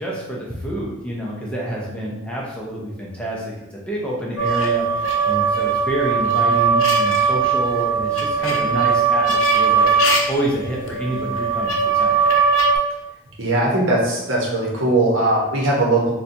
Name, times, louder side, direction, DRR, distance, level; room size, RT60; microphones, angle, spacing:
voice 1, 0.0-3.4 3.7-4.9 5.2-9.9 10.3-12.3, equal, 5° left, -4 dB, 0.5 m, -27 dB
sound 1, 4.4-12.8, right 5 dB, 85° left, 0.5 m, -19 dB
voice 2, 13.4-16.2, right 2 dB, 70° right, -3 dB, 0.8 m, -19 dB
4.1 x 2.2 x 2.6 m, 0.95 s
head